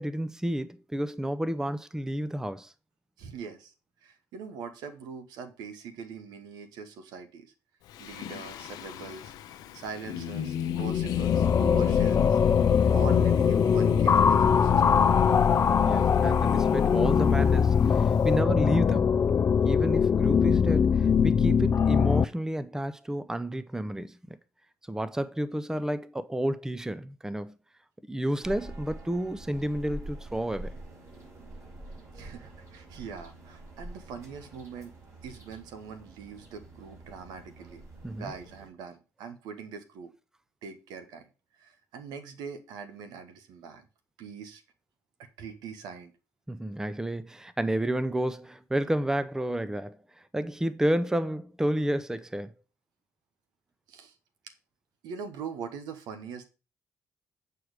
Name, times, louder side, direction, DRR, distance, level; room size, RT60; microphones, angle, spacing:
voice 1, 0.0-2.7 15.8-19.1 19.6-24.4 24.9-27.6 28.1-30.7 38.0-38.3 46.5-50.0 50.3-52.5, right 1 dB, 10° right, 0.6 m, -30 dB
voice 2, 3.2-3.7 4.0-7.5 8.0-9.3 9.7-12.4 12.9-15.0 32.1-34.9 35.2-37.8 38.1-40.1 40.6-41.3 41.6-43.8 44.2-44.6 45.4-46.1 53.9-54.1 55.0-56.5, right 6 dB, 85° right, 1.2 m, -42 dB
Singing, 7.9-18.3, left 11 dB, 80° left, 0.6 m, -32 dB
sound 1, 10.7-22.2, left 6 dB, 45° left, 0.4 m, -22 dB
sound 2, 28.4-38.7, right 1 dB, 50° right, 4.6 m, -46 dB
7.8 x 4.7 x 4.9 m
supercardioid pair, 60°, 7 cm